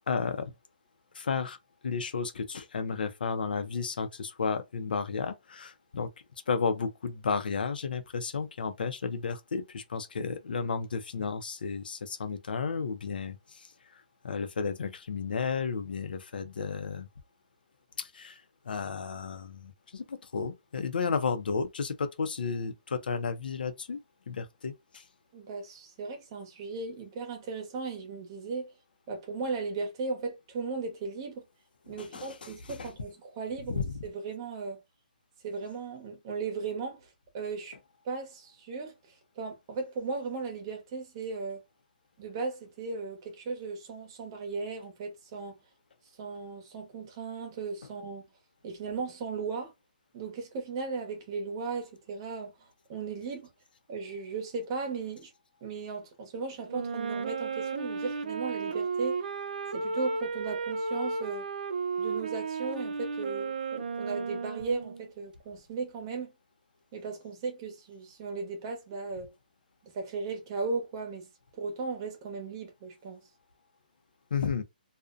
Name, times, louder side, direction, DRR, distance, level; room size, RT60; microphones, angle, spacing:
voice 1, 0.1-0.5 1.1-1.6 1.8-6.1 6.5-17.1 18.0-24.0 24.3-25.0 31.9-32.9 33.7-33.9 74.3-74.6, left 5 dB, 75° left, 0.5 m, -33 dB
voice 2, 25.3-28.7 29.1-31.4 31.9-34.8 35.4-37.1 37.3-37.8 38.0-38.9 39.4-41.6 42.2-45.6 46.2-48.2 48.6-49.7 50.1-52.5 52.9-53.5 53.9-55.3 55.6-59.3 59.7-61.5 62.0-66.3 66.9-69.3 69.9-71.3 71.6-73.2, right 4 dB, 30° right, 0.8 m, -36 dB
Wind instrument woodwind instrument, 56.7-65.1, right 4 dB, 70° right, 0.5 m, -34 dB
2.5 x 2.1 x 2.4 m
hypercardioid pair, 165°, 5 cm